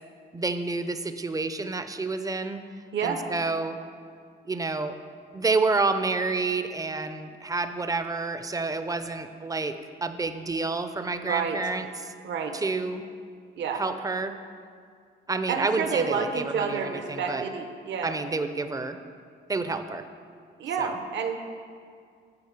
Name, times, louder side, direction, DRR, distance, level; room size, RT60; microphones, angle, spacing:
voice 1, 0.3-2.6 3.0-3.8 4.5-4.9 5.3-12.1 12.5-13.0 13.7-14.3 15.3-17.4 18.0-19.0 19.5-20.0 20.8-21.0, right 3 dB, 15° right, 9 dB, 0.5 m, -29 dB
voice 2, 11.2-11.6 12.2-12.5 13.6-13.8 15.5-18.2 20.6-21.4, right 6 dB, 65° right, 5 dB, 0.9 m, -29 dB
9.7 x 4.3 x 6.6 m, 2.2 s
cardioid pair, 90°, 20 cm